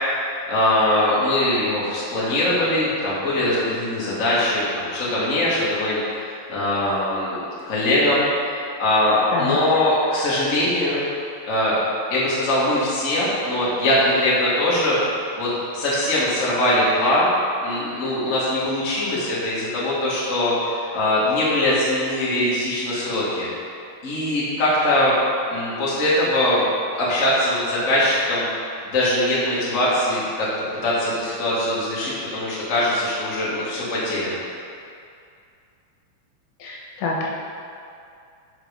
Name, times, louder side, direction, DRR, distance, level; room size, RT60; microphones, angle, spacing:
voice 1, 0.5-7.4 7.7-8.3 8.8-11.1 11.5-11.8 12.1-15.0 15.4-17.3 17.6-23.5 24.0-25.1 25.5-26.6 26.9-28.4 28.8-30.5 30.8-34.4, left 1 dB, 60° left, -8 dB, 0.8 m, -21 dB
voice 2, 36.6-37.3, left 3 dB, 80° left, -3 dB, 2.8 m, -26 dB
5.7 x 5.0 x 5.1 m, 2.4 s
omnidirectional pair, 4.3 m